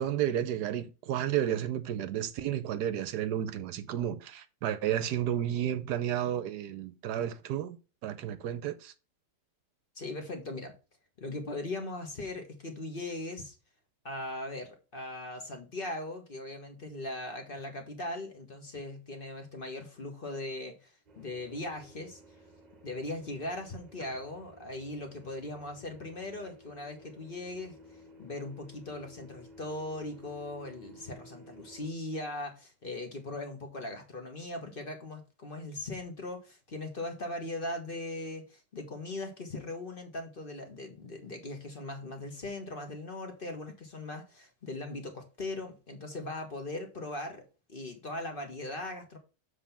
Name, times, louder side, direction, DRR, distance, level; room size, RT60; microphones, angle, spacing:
voice 1, 0.0-7.8 8.0-8.9, right 10 dB, 75° right, 1.1 m, -32 dB
voice 2, 9.9-10.7 11.2-13.6 14.0-22.2 22.8-27.8 28.2-47.4 47.7-49.2, left 2 dB, 35° left, 1.1 m, -39 dB
sound 1, 21.1-31.9, equal, 30° right, 1.1 m, -55 dB
7.3 x 3.4 x 5.7 m
omnidirectional pair, 1.9 m